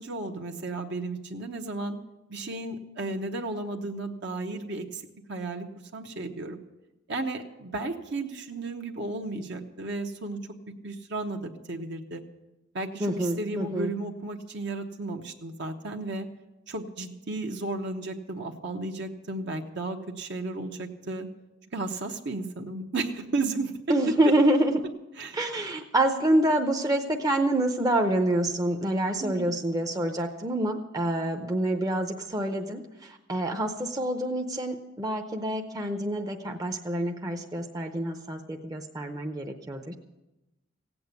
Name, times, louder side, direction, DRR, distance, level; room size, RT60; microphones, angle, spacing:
voice 1, 0.0-2.0 2.3-5.0 5.3-5.7 5.9-6.6 7.1-10.4 10.8-12.2 12.7-16.3 16.7-21.3 21.7-23.7 24.1-24.2 25.2-25.4 29.2-29.5, right 2 dB, 65° right, 3 dB, 1.0 m, -34 dB
voice 2, 13.0-14.0 23.9-24.8 25.3-39.9, right 1 dB, 20° right, 3 dB, 0.7 m, -27 dB
16.5 x 8.6 x 8.2 m, 1.0 s
head